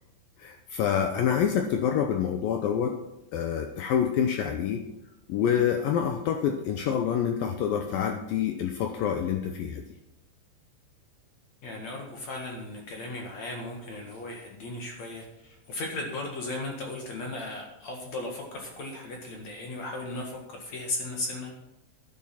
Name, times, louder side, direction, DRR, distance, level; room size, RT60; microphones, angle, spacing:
voice 1, 0.4-3.0 3.3-4.8 5.3-9.8, left 8 dB, 80° left, 5 dB, 2.1 m, -27 dB
voice 2, 11.6-21.6, left 2 dB, 55° left, 1 dB, 2.3 m, -36 dB
11.5 x 11.0 x 5.8 m, 0.89 s
omnidirectional pair, 5.0 m